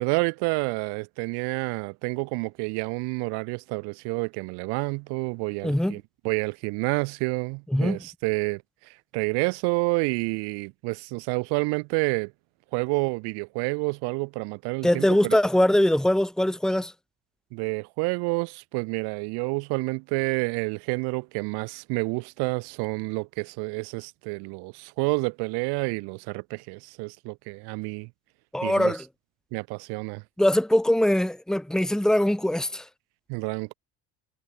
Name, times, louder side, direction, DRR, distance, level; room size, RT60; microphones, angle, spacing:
voice 1, 0.0-12.3 12.7-15.4 17.5-28.1 28.6-28.9 29.5-30.2 33.3-33.7, right 31 dB, 90° right, 7.9 m, -29 dB
voice 2, 5.6-6.0 7.7-8.0 14.8-16.9 28.5-29.0 30.4-32.9, left 1 dB, ahead, 2.8 m, -22 dB
cardioid pair, 155°, 38 cm